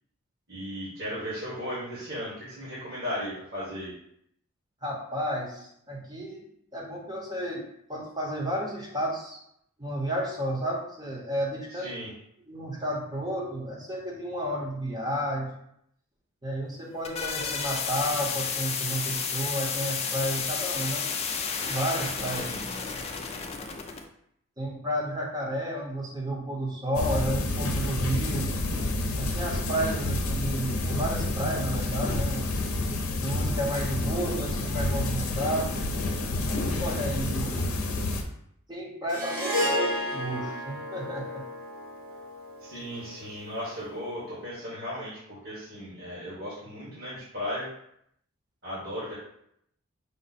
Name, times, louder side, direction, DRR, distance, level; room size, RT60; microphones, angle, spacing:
voice 1, 0.5-3.9 11.7-12.1 22.3-22.6 42.6-47.7 48.6-49.1, equal, 45° right, -10 dB, 1.5 m, -36 dB
voice 2, 4.8-6.4 6.7-7.6 7.9-9.4 9.8-11.9 12.5-15.5 16.4-21.1 21.6-22.4 24.6-28.5 29.1-32.6 33.2-35.8 36.5-37.7 38.7-41.4, right 1 dB, 20° right, -2 dB, 0.9 m, -32 dB
sound 1, 16.7-24.0, left 5 dB, 30° left, 0.4 m, -32 dB
sound 2, 26.9-38.2, left 2 dB, 75° left, 0.6 m, -29 dB
Harp, 39.1-43.5, equal, 85° right, 1.1 m, -32 dB
5.2 x 2.1 x 4.1 m, 0.73 s
head